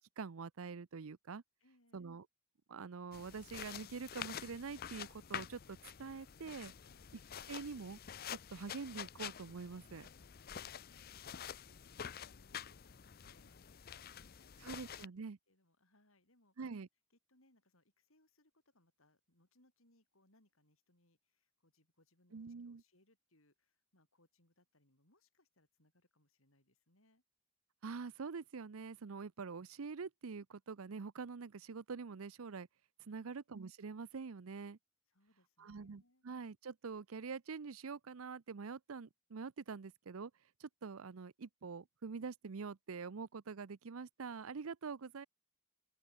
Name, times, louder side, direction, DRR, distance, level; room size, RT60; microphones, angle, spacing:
voice 1, 0.2-1.4 1.9-2.2 2.7-6.7 7.5-8.0 8.3-10.1 14.6-15.4 16.6-16.9 22.3-22.8 27.8-32.7 33.1-34.8 35.6-40.3 40.6-45.3, right 5 dB, 75° right, 0.6 m, -45 dB
voice 2, 1.6-2.1 6.8-7.2 10.4-15.0 15.5-16.6 17.1-27.2 33.1-33.4 35.1-36.3, left 1 dB, 70° left, 7.6 m, -74 dB
sound 1, 3.1-15.1, left 8 dB, 45° left, 0.5 m, -48 dB
open air
head